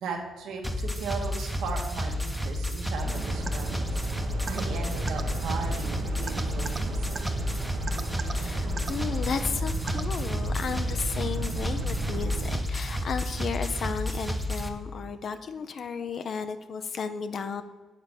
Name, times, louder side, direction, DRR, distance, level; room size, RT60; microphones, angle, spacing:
voice 1, 0.0-4.0 4.5-7.2, right 5 dB, 80° right, 2 dB, 1.4 m, -37 dB
sound 1, 0.6-14.7, equal, 5° left, 0.8 m, -31 dB
sound 2, 3.0-12.6, right 3 dB, 65° right, 1.0 m, -35 dB
sound 3, 3.5-3.6 4.5-4.6 5.1-5.2 6.3-6.8 7.2-7.3 7.9-8.3 8.8-8.9 9.9-10.0, right 4 dB, 30° right, 0.6 m, -34 dB
voice 2, 8.3-17.6, left 6 dB, 55° left, 10 dB, 0.5 m, -34 dB
7.5 x 4.1 x 6.2 m, 1.3 s
cardioid pair, 90°, 0 cm